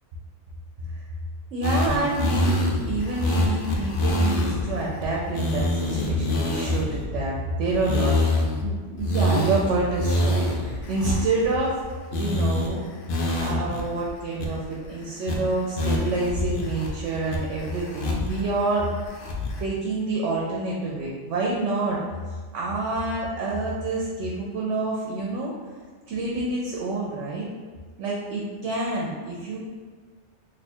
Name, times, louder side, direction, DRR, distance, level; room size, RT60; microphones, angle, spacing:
voice 1, 1.5-8.3 8.6-11.8 12.1-12.8 13.4-18.9 19.6-22.0 22.5-25.5 26.1-27.5 28.0-29.6, right 2 dB, 75° right, -4 dB, 0.9 m, -27 dB
sound 1, 1.6-4.6 5.0-5.1 5.3-7.0 7.7-8.6 9.0-11.8 12.1-12.7 13.1-13.8 14.1-14.2 14.4-14.9 15.3-15.4 15.8-16.9 17.3-18.4 18.8-19.6, left 1 dB, 60° left, 0.7 m, -26 dB
2.7 x 2.3 x 4.2 m, 1.5 s
omnidirectional pair, 1.2 m